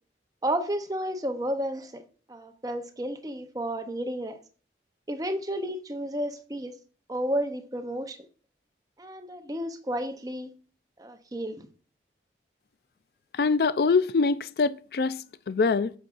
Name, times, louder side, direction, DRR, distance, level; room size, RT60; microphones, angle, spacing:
voice 1, 0.4-2.0 2.3-4.4 5.1-6.7 7.1-8.2 9.0-10.5 11.0-11.6, right 1 dB, 20° right, 0.7 m, -31 dB
voice 2, 13.3-15.9, left 4 dB, 60° left, 0.4 m, -24 dB
9.0 x 6.3 x 2.5 m
head